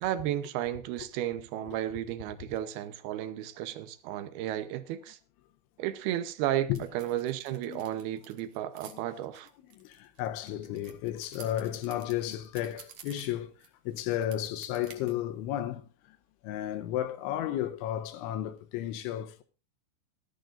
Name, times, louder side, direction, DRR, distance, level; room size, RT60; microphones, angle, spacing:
voice 1, 0.0-5.2 5.8-9.5, right 12 dB, 75° right, 2.3 m, -33 dB
sound 1, 6.8-8.9 9.5-13.7 14.0-15.1, right 8 dB, 55° right, 2.3 m, -51 dB
voice 2, 9.7-13.5 13.9-16.2 16.4-19.4, left 12 dB, 85° left, 3.2 m, -33 dB
18.5 x 13.5 x 2.5 m
omnidirectional pair, 5.4 m